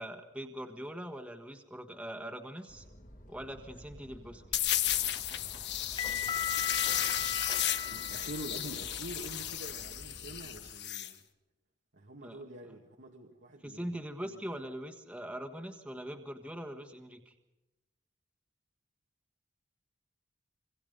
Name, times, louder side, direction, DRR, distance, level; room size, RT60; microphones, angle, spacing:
voice 1, 0.0-2.8 3.3-4.4 12.2-12.4 13.6-17.3, equal, 5° right, 3 dB, 1.5 m, -42 dB
sound 1, 2.7-10.7, equal, 45° left, 2.5 m, -52 dB
sound 2, 4.5-11.1, left 11 dB, 65° left, 1.4 m, -34 dB
sound 3, 4.9-9.7, left 8 dB, 25° left, 1.1 m, -38 dB
voice 2, 7.9-11.2 11.9-14.4, right 1 dB, 80° right, -1 dB, 2.0 m, -46 dB
26.5 x 24.0 x 5.4 m, 0.98 s
head